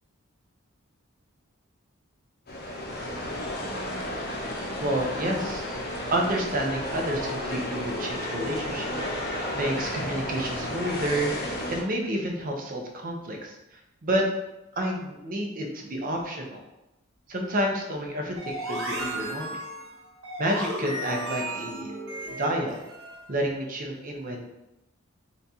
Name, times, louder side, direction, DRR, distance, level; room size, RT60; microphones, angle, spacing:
sound 1, 2.5-11.8, left 1 dB, 45° left, 0.7 m, -32 dB
voice 1, 4.8-5.6 6.1-8.9 9.5-14.3 14.8-16.6 17.3-19.6 20.4-21.9 22.2-22.8 23.3-24.5, right 1 dB, 40° right, 1 dB, 0.6 m, -29 dB
sound 2, 18.4-23.3, right 1 dB, 65° right, 1.2 m, -35 dB
4.0 x 2.3 x 4.1 m, 0.92 s
head